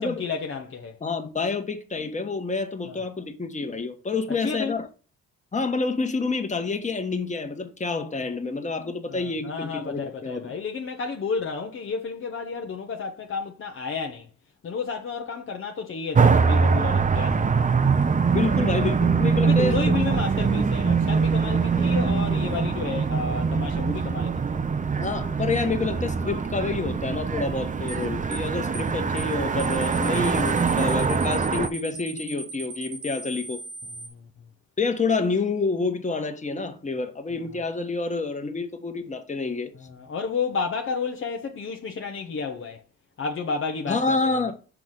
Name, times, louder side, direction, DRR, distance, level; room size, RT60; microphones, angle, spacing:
voice 1, 0.0-1.0 2.9-3.0 4.3-4.8 9.1-14.3 14.6-17.7 19.4-24.6 33.9-34.3 37.5-37.6 39.7-42.8 43.2-44.5, left 5 dB, 45° left, 0.9 m, -31 dB
voice 2, 1.0-4.9 5.5-10.5 18.3-19.7 25.0-33.6 34.8-39.7 43.9-44.5, left 3 dB, 25° left, 1.4 m, -28 dB
sound 1, 16.1-31.7, right 5 dB, 25° right, 0.7 m, -23 dB
sound 2, 27.9-28.0 28.3-28.5 28.7-28.9 29.2-29.3 29.6-34.1, right 4 dB, 85° right, 1.3 m, -38 dB
6.0 x 4.7 x 3.9 m
cardioid pair, 90°, 30 cm